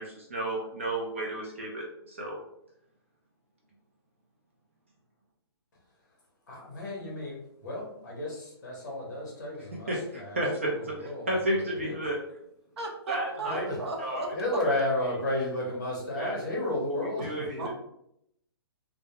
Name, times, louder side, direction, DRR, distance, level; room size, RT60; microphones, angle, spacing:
voice 1, 0.0-2.4 9.9-10.0 10.4-10.7 11.3-12.2 13.1-13.6 14.0-14.3 14.7-14.9 16.2-16.3 17.2-17.7, right 1 dB, 30° right, -2 dB, 0.4 m, -31 dB
voice 2, 6.5-12.1 13.5-13.8 14.3-17.7, left 1 dB, 45° left, -2 dB, 0.8 m, -33 dB
voice 3, 12.8-14.3 17.6-17.7, right 3 dB, 75° right, 1 dB, 0.6 m, -36 dB
2.2 x 2.0 x 2.8 m, 0.77 s
hypercardioid pair, 180°, 14 cm